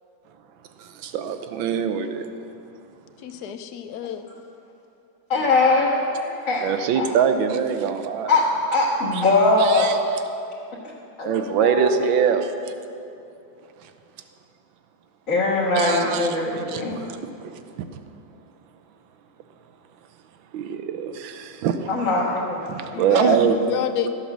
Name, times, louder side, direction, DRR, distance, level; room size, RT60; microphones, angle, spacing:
voice 1, 0.8-2.3 6.6-8.3 9.1-9.2 9.6-10.0 11.2-12.7 13.8-13.9 15.7-17.8 20.5-21.9 22.2-22.3 22.7-23.6, right 7 dB, 85° right, 9 dB, 1.5 m, -24 dB
voice 2, 3.2-4.2 22.9-24.1, left 9 dB, 70° left, 9 dB, 1.1 m, -28 dB
voice 3, 5.3-6.6 7.0-7.1 8.3-8.4 8.7-10.0 11.2-11.9 15.3-17.0 21.9-23.0, left 2 dB, 45° left, -7 dB, 1.9 m, -21 dB
13.5 x 8.1 x 6.1 m, 2.7 s
omnidirectional pair, 2.1 m